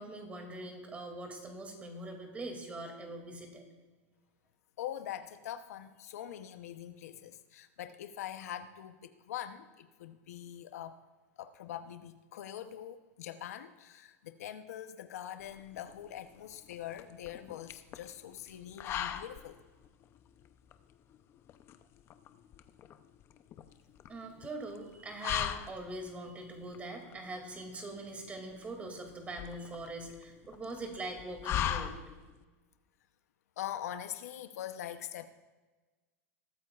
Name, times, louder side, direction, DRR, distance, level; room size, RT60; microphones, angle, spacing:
voice 1, 0.0-3.6 24.1-31.9, right 2 dB, 15° right, 3 dB, 2.4 m, -42 dB
voice 2, 4.8-11.0 11.4-19.6 33.6-35.3, left 11 dB, 85° left, 9 dB, 0.8 m, -43 dB
sound 1, 15.4-32.4, left 10 dB, 30° left, 0.6 m, -41 dB
21.5 x 13.0 x 2.4 m, 1.3 s
supercardioid pair, 145°, 8 cm